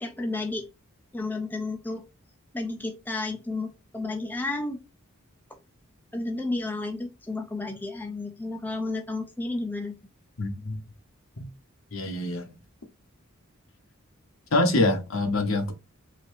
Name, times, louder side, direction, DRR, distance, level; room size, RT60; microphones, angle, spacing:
voice 1, 0.0-0.7 1.1-2.0 2.5-4.8 6.1-9.9, left 2 dB, 10° left, 0.5 m, -32 dB
voice 2, 10.4-10.8 11.4-11.5 11.9-12.5 14.5-15.7, left 2 dB, 65° left, 1.0 m, -25 dB
4.0 x 2.6 x 2.6 m
head